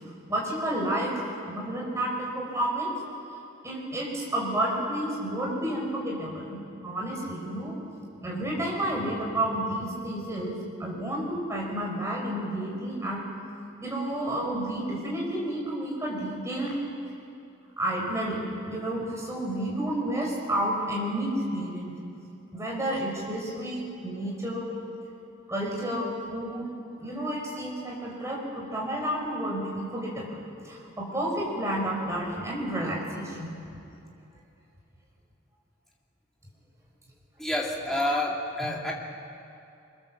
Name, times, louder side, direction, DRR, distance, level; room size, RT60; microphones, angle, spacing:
voice 1, 0.3-1.1 1.5-2.9 3.3-6.6 6.8-7.8 8.2-13.2 13.8-16.8 17.8-21.9 22.5-24.8 25.5-26.7 27.0-33.5, right 1 dB, 15° right, -3 dB, 4.9 m, -31 dB
voice 2, 37.4-38.9, left 1 dB, ahead, -3 dB, 2.6 m, -28 dB
24.0 x 21.5 x 7.3 m, 2.7 s
head